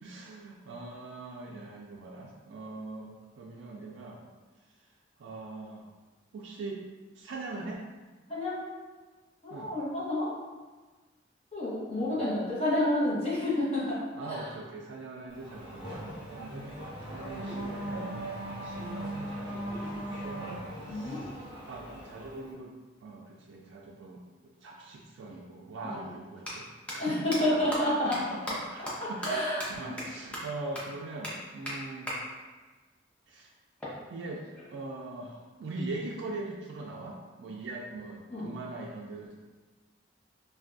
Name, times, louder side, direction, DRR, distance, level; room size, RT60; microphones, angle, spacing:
voice 1, 0.0-4.2 5.2-5.9 6.3-6.8 7.1-7.8 9.5-9.7 12.0-12.3 14.1-18.1 18.6-21.3 21.7-22.7 23.0-24.2 24.6-32.1 33.3-33.5 34.1-34.4 34.7-39.3, right 2 dB, 80° right, -2 dB, 0.3 m, -41 dB
voice 2, 9.4-10.3 11.5-14.0 14.3-14.5 20.9-21.3 25.8-26.1 27.0-28.2 29.0-29.9 38.3-38.5, left 1 dB, 35° left, -8 dB, 0.9 m, -29 dB
Race car auto racing / Accelerating revving vroom, 15.3-22.5, right 1 dB, 25° right, 0.9 m, -39 dB
sound 1, 26.4-26.5 26.9-27.0 27.3-27.4 27.7-27.8 28.1-28.2 28.5-28.6 28.9-29.0 29.2-29.3 29.6-29.7 30.0-30.1 30.3-30.4 30.7-30.8 31.2-31.3 31.7-31.8 32.1-32.2 33.8-34.8, equal, 5° left, 0.5 m, -37 dB
3.3 x 2.2 x 2.5 m, 1.3 s
head